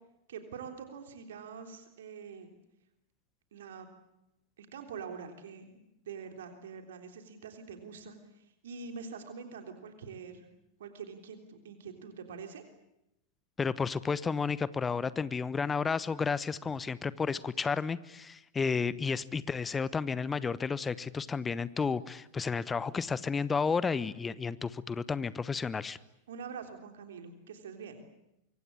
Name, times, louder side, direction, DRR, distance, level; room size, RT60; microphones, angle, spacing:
voice 1, 0.3-2.5 3.5-3.9 4.6-5.8 6.1-10.5 10.8-12.6 26.3-28.0, right 6 dB, 60° right, 5 dB, 3.5 m, -45 dB
voice 2, 13.6-26.0, left 5 dB, 15° left, 18 dB, 1.0 m, -32 dB
25.0 x 24.5 x 8.7 m, 0.87 s
figure-of-eight pair, 90°, 0 cm